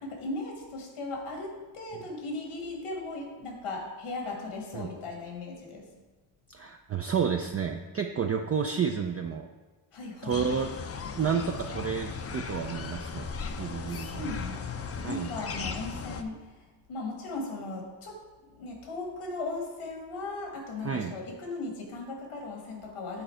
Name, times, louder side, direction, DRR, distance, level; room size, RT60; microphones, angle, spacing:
voice 1, 0.0-5.9 9.9-10.4 13.5-23.2, left 2 dB, 80° left, 1 dB, 1.6 m, -38 dB
voice 2, 6.5-9.5 10.2-10.7 11.1-13.3 13.6-14.3 15.0-15.3 20.8-21.1, right 6 dB, 30° right, 3 dB, 0.4 m, -30 dB
sound 1, 10.3-16.2, left 5 dB, 30° left, 0.5 m, -37 dB
7.8 x 4.0 x 4.4 m, 1.2 s
cardioid pair, 65°, 49 cm